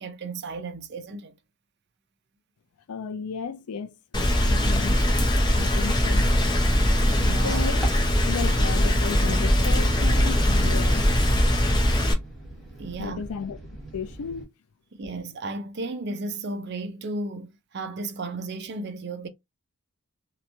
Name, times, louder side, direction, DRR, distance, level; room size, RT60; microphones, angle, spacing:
voice 1, 0.0-1.3 7.2-7.6 12.8-13.2 14.9-19.3, right 2 dB, 50° right, 0.4 m, -34 dB
voice 2, 2.9-3.9 4.5-5.0 5.5-6.3 7.4-7.8 8.2-11.1 13.0-13.6 13.9-14.5, left 6 dB, 80° left, 0.4 m, -33 dB
Rain, 4.1-12.1, equal, 20° left, 0.6 m, -21 dB
sound 1, 6.5-14.5, right 1 dB, ahead, 1.0 m, -41 dB
2.9 x 2.2 x 2.6 m
head